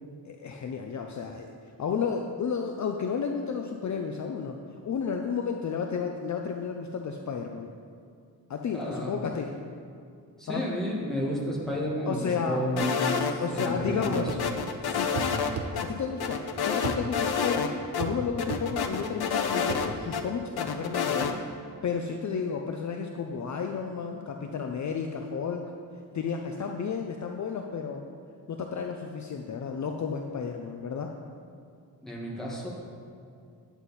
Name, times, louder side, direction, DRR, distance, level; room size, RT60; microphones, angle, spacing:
voice 1, 0.2-4.6 4.8-7.7 8.5-9.5 10.5-10.7 12.1-12.6 13.4-14.3 14.8-15.1 15.7-21.4 21.8-25.6 26.1-28.0 28.5-31.2, left 6 dB, 50° left, 3 dB, 0.5 m, -32 dB
voice 2, 8.7-9.2 10.4-14.3 32.0-32.7, equal, ahead, -5 dB, 1.6 m, -31 dB
sound 1, 12.8-13.7 14.0-15.5 15.8-15.9 16.2-17.7 17.9-18.0 18.4-20.2 20.6-21.3, left 6 dB, 75° left, 0.8 m, -29 dB
sound 2, 14.3-14.5 15.2-15.7 16.8-17.0 18.0-18.2 18.5-18.7 19.7-19.9, right 5 dB, 85° right, 0.8 m, -33 dB
9.7 x 8.0 x 4.1 m, 2.4 s
wide cardioid pair, 175°, 39 cm